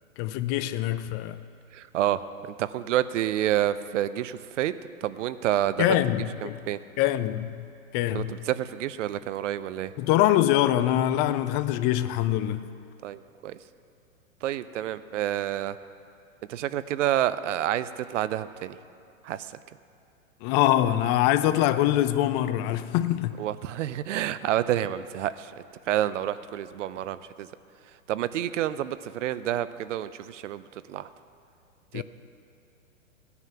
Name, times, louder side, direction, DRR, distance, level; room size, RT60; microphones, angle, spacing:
voice 1, 0.2-1.4 5.8-6.6 7.0-7.7 7.9-8.3 10.0-12.7 20.4-23.4 31.9-32.0, left 13 dB, 25° left, 0.5 m, -24 dB
voice 2, 1.7-6.0 6.4-6.8 8.1-9.9 13.0-13.6 14.4-15.8 16.5-18.8 19.2-19.6 23.4-25.5 25.9-27.5 28.1-31.1 31.9-32.0, right 12 dB, 60° right, 0.7 m, -29 dB
16.5 x 9.7 x 5.8 m
hypercardioid pair, 120°, 41 cm